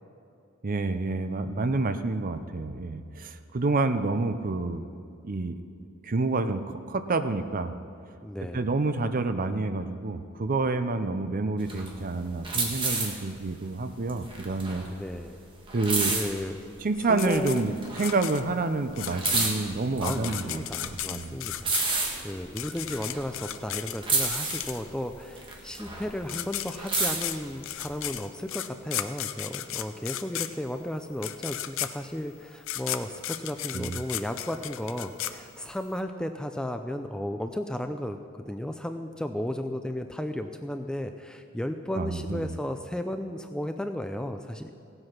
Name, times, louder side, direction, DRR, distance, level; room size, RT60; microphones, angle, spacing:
voice 1, 0.6-4.8 5.2-5.5 6.0-7.7 8.5-14.9 15.7-16.1 16.8-21.4 33.7-34.0 41.9-42.5, right 3 dB, 40° right, 10 dB, 0.6 m, -28 dB
voice 2, 8.2-8.7 14.9-15.4 16.1-16.6 17.1-17.6 20.0-38.2 38.5-44.7, left 1 dB, 5° left, 7 dB, 0.4 m, -34 dB
sound 1, 11.6-16.8 17.2-18.5 18.8-23.7 24.0-26.3 26.6-28.1, right 3 dB, 25° right, 1.6 m, -31 dB
sound 2, 17.2-25.1 25.9-26.0 26.2-35.9, left 12 dB, 65° left, 0.5 m, -35 dB
16.5 x 7.9 x 5.8 m, 2.5 s
head